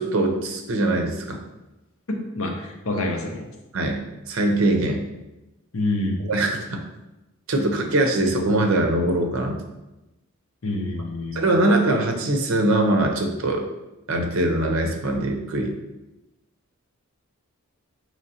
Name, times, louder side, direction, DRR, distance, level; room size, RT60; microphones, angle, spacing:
voice 1, 0.0-1.4 3.7-4.0 4.3-5.0 6.2-6.8 7.5-9.6 11.3-13.6 14.1-15.7, right 1 dB, 65° right, 3 dB, 0.6 m, -22 dB
voice 2, 2.1-3.5 5.7-6.2 10.6-11.4, left 2 dB, 65° left, 2 dB, 0.7 m, -27 dB
5.0 x 3.1 x 2.8 m, 1.0 s
head